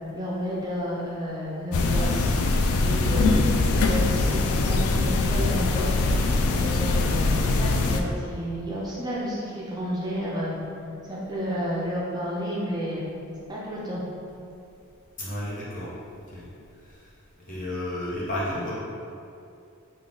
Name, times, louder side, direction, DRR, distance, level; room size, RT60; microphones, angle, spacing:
voice 1, 0.1-2.3 2.8-3.5 3.8-6.0 6.5-10.6 11.0-13.0 13.5-14.0, equal, 20° right, -6 dB, 0.4 m, -31 dB
sound 1, 1.7-8.0, left 3 dB, 85° left, 0.3 m, -22 dB
voice 2, 15.2-15.9 16.3-16.5 17.5-18.7, left 1 dB, 40° left, -8 dB, 1.0 m, -32 dB
3.9 x 2.3 x 3.6 m, 2.6 s
head